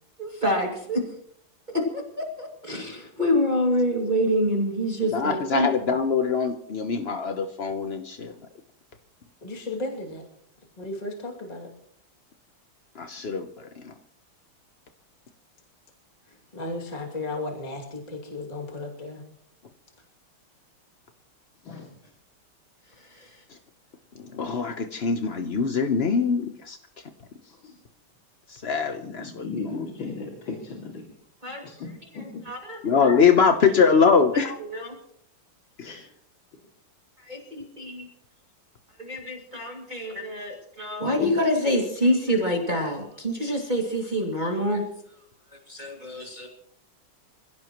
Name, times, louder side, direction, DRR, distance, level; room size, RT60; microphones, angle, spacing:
voice 1, 0.2-1.0 1.7-5.7 23.1-23.3 31.4-31.6 32.5-32.8 34.6-35.0 37.2-38.1 39.0-44.8 45.7-46.5, equal, 20° right, -1 dB, 2.5 m, -26 dB
voice 2, 5.1-8.3 13.0-13.5 13.8-13.9 24.2-26.8 28.5-29.4 32.8-34.6 35.8-35.9, left 5 dB, 50° left, 6 dB, 0.7 m, -23 dB
voice 3, 9.4-10.2 10.8-11.7 16.5-19.2, left 2 dB, 20° left, -1 dB, 2.6 m, -34 dB
voice 4, 21.6-22.1 27.4-27.8 29.0-31.0 31.6-31.9 32.1-32.4 35.8-36.1 41.0-41.3, left 4 dB, 65° left, -1 dB, 3.2 m, -36 dB
26.0 x 16.5 x 3.1 m, 0.70 s
omnidirectional pair, 2.3 m